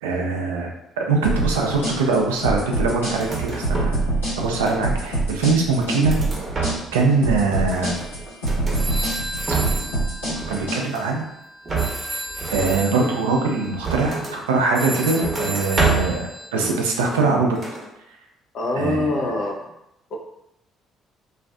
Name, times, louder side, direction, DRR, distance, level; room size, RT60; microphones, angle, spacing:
voice 1, 0.0-0.7 1.0-4.0 4.4-6.2 6.9-8.0 10.5-11.3 12.5-17.6 18.8-19.1, right 3 dB, 80° right, 1 dB, 0.4 m, -22 dB
sound 1, 1.2-10.8, right 2 dB, 90° left, 1.1 m, -25 dB
sound 2, 3.1-4.1 4.3-5.1 5.6-7.1 7.4-8.8 9.2-9.9 10.2-11.2 11.6-14.4 14.8-16.2 16.5-17.3 17.5-17.9, right 4 dB, 35° right, 0.7 m, -28 dB
sound 3, 8.7-16.5, right 1 dB, ahead, 0.5 m, -33 dB
voice 2, 18.5-19.7, left 2 dB, 55° left, 1 dB, 0.5 m, -24 dB
2.4 x 2.3 x 2.3 m, 0.85 s
hypercardioid pair, 50°, 0 cm